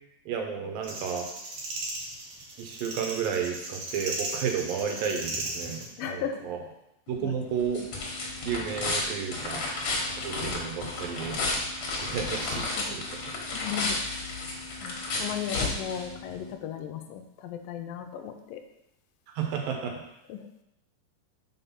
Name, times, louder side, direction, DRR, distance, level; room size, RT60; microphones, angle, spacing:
voice 1, 0.3-1.3 2.6-6.6 7.1-7.8 8.4-9.8 10.2-11.4 12.0-13.0 19.4-19.9, right 7 dB, 80° right, 2 dB, 2.8 m, -32 dB
sound 1, 0.8-5.9, right 2 dB, 60° right, 2.0 m, -36 dB
voice 2, 6.0-6.4 7.2-7.4 12.7-13.0 13.5-14.0 14.8-18.6 20.3-20.5, left 9 dB, 85° left, 6 dB, 2.3 m, -36 dB
sound 2, 7.1-16.5, left 2 dB, 60° left, 2.5 m, -33 dB
5.5 x 5.2 x 5.7 m, 0.82 s
omnidirectional pair, 4.0 m